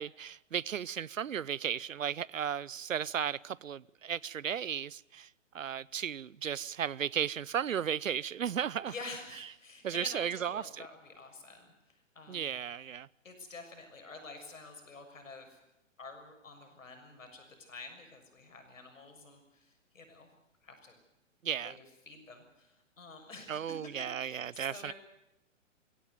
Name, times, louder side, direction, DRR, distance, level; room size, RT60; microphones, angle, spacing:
voice 1, 0.0-5.3 5.5-8.9 9.8-10.9 12.3-13.1 21.4-21.7 23.5-24.9, right 8 dB, 80° right, 0.7 m, -35 dB
voice 2, 8.8-12.6 13.2-15.6 16.0-20.3 20.6-21.0 21.6-21.7 22.1-24.9, left 3 dB, 80° left, 6.7 m, -49 dB
23.0 x 16.5 x 9.5 m
figure-of-eight pair, 125°, 39 cm